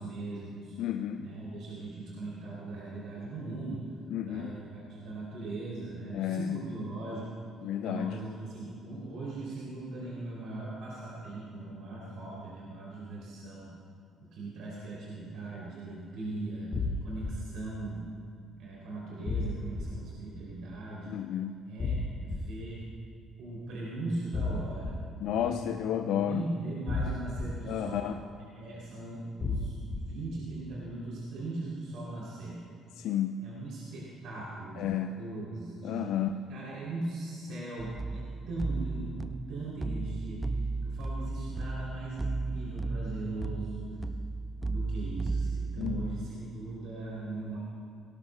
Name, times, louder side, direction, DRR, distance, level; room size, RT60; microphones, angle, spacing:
voice 1, 0.0-0.8 1.2-3.9 4.2-7.3 7.8-13.7 14.3-16.7 17.0-18.0 18.6-21.2 21.7-22.8 23.4-25.0 25.3-28.1 28.5-29.8 30.1-32.6 33.4-40.4 40.8-44.0 44.6-47.6, right 2 dB, 60° right, -6 dB, 2.9 m, -39 dB
voice 2, 0.8-1.3 4.1-4.5 6.1-6.6 7.6-8.2 21.1-21.6 25.2-26.4 27.7-28.2 33.0-33.4 34.8-35.2 35.8-36.4 45.8-46.1, left 10 dB, 65° left, 8 dB, 0.4 m, -32 dB
sound 1, 16.7-17.3 19.3-19.8 21.8-22.4 24.3-24.9 26.9-27.4 29.4-30.0, left 3 dB, 40° left, 1.7 m, -31 dB
sound 2, 37.8-46.3, right 3 dB, 20° right, 0.5 m, -34 dB
18.0 x 17.5 x 2.2 m, 2.4 s
hypercardioid pair, 50°, 0 cm